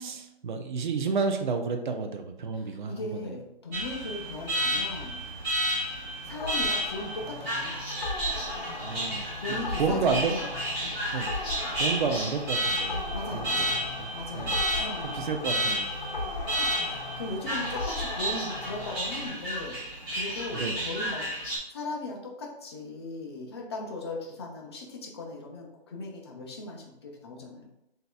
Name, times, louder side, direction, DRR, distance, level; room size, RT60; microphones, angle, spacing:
voice 1, 0.0-3.3 8.8-10.3 11.1-14.8 15.1-15.9 16.2-16.4 20.5-20.8, right 5 dB, 50° right, 4 dB, 0.5 m, -31 dB
voice 2, 2.5-5.2 6.2-7.8 9.4-10.4 10.8-11.0 13.1-13.8 14.1-15.3 16.3-19.8 20.1-21.3 21.7-27.7, left 2 dB, 25° left, 0 dB, 0.6 m, -38 dB
Alarm, 3.7-21.6, right 1 dB, 10° right, 0.8 m, -32 dB
sound 1, 4.8-19.3, left 2 dB, 45° left, 1.0 m, -37 dB
7.6 x 2.8 x 2.3 m, 0.83 s
hypercardioid pair, 155°, 32 cm